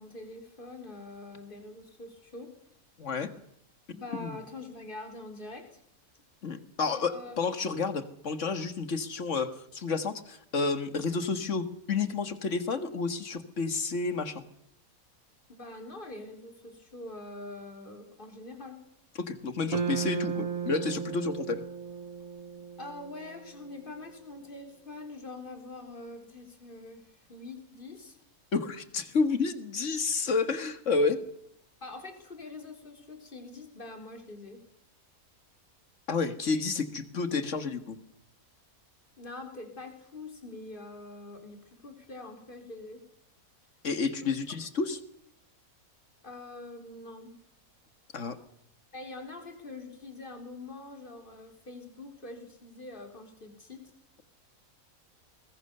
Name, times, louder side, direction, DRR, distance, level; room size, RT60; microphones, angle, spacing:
voice 1, 0.0-2.5 3.9-5.8 6.8-7.4 15.5-18.8 22.8-28.2 31.8-34.6 39.2-43.0 44.2-44.4 46.2-47.4 48.9-53.8, left 2 dB, 35° left, 5 dB, 3.8 m, -44 dB
voice 2, 3.0-3.3 4.1-4.4 6.4-14.4 19.2-21.6 28.5-31.2 36.1-38.0 43.8-45.0 48.1-48.4, left 4 dB, 55° left, 11 dB, 2.0 m, -30 dB
sound 1, 19.7-24.0, right 7 dB, 65° right, 2.2 m, -35 dB
23.5 x 21.0 x 6.8 m, 0.74 s
omnidirectional pair, 1.5 m